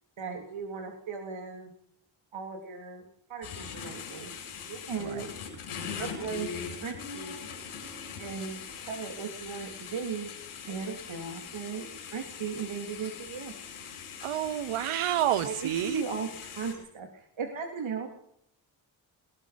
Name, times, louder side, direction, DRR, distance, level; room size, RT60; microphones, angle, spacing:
voice 1, 0.2-1.7 2.3-4.3 4.7-5.3 6.0-7.4 8.2-8.6 8.9-10.3 10.7-13.5 15.4-18.1, right 5 dB, 65° right, 2 dB, 3.4 m, -37 dB
sound 1, 3.4-16.7, left 6 dB, 90° left, 7.0 m, -41 dB
voice 2, 14.2-16.0, right 12 dB, 90° right, 15 dB, 1.2 m, -29 dB
24.5 x 20.0 x 5.3 m, 0.71 s
supercardioid pair, 40°, 49 cm